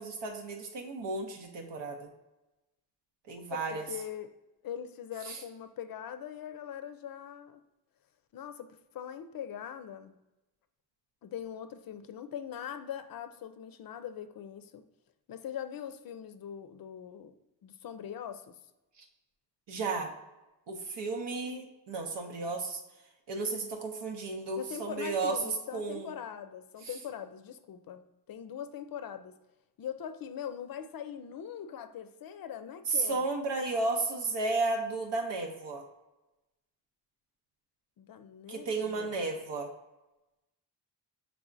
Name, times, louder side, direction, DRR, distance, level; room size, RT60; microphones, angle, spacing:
voice 1, 0.0-2.1 3.3-3.8 5.2-5.4 19.0-19.1 19.7-20.1 20.7-22.8 23.3-25.4 25.7-26.1 26.8-26.9 32.9-35.8 38.5-39.7, right 3 dB, 80° right, 2 dB, 0.8 m, -33 dB
voice 2, 3.5-4.3 4.6-7.6 8.3-10.1 11.2-14.8 15.3-17.3 17.6-18.5 24.6-29.4 29.8-33.3 38.0-39.1, left 9 dB, 55° left, 10 dB, 0.5 m, -42 dB
6.1 x 3.4 x 2.5 m, 1.0 s
wide cardioid pair, 110°, 42 cm